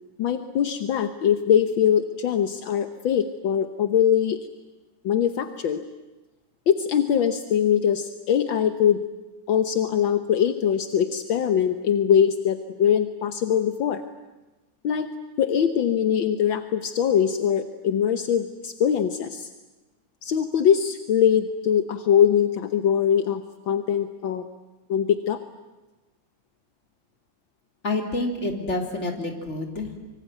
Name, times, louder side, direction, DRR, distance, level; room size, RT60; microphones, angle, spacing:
voice 1, 0.2-4.4 5.0-5.8 6.7-9.0 9.5-14.0 14.8-15.1 15.4-19.5 20.2-24.4 24.9-25.4, left 8 dB, 60° left, 9 dB, 1.3 m, -22 dB
voice 2, 27.8-29.9, left 2 dB, 25° left, 3 dB, 3.5 m, -28 dB
25.5 x 24.5 x 9.2 m, 1.1 s
omnidirectional pair, 3.3 m